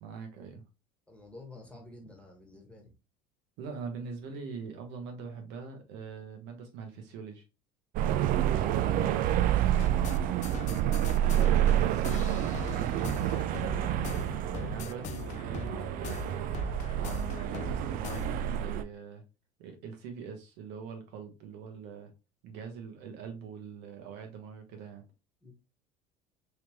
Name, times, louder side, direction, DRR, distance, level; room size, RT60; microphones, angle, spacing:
voice 1, 0.0-0.6 3.6-7.4 11.8-14.1 14.7-16.5 17.0-19.2 19.6-22.1 22.4-25.0, right 6 dB, 60° right, 1.0 m, -43 dB
voice 2, 1.1-2.9 8.5-11.2 25.4-25.5, left 2 dB, 5° left, 1.4 m, -51 dB
sound 1, 8.0-18.8, right 11 dB, 45° right, 0.4 m, -28 dB
sound 2, 9.7-18.6, left 8 dB, 35° left, 0.4 m, -42 dB
3.2 x 3.1 x 3.0 m
hypercardioid pair, 70°, 21 cm